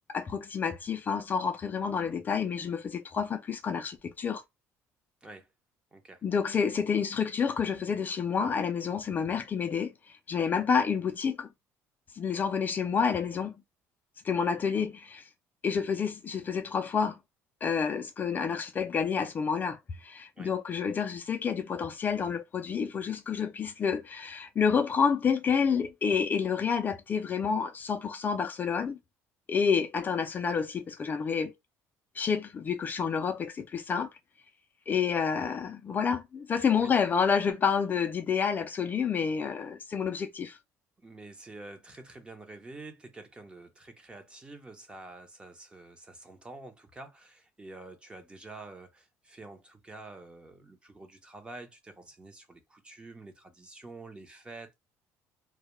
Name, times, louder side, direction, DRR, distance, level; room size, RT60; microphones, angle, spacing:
voice 1, 0.1-4.4 6.2-11.5 12.1-13.5 14.2-15.3 15.6-17.2 17.6-29.0 29.5-31.5 32.1-34.1 34.9-40.6, left 6 dB, 30° left, 0.3 m, -29 dB
voice 2, 5.9-6.2 20.4-20.5 36.7-37.0 41.0-54.7, right 2 dB, 15° right, 0.6 m, -48 dB
2.1 x 2.1 x 3.0 m
cardioid pair, 120°, 6 cm